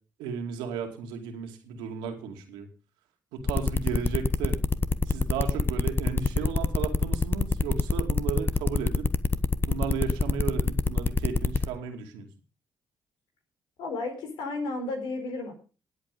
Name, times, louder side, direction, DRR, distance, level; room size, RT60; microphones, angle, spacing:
voice 1, 0.2-2.7 3.3-4.6 5.1-9.1 9.7-12.3, right 6 dB, 85° right, 5 dB, 2.4 m, -34 dB
sound 1, 3.5-11.7, left 3 dB, 30° left, 1.2 m, -25 dB
voice 2, 13.8-15.5, left 2 dB, 80° left, 5 dB, 4.4 m, -33 dB
18.5 x 8.2 x 5.2 m, 0.36 s
hypercardioid pair, 50°, 8 cm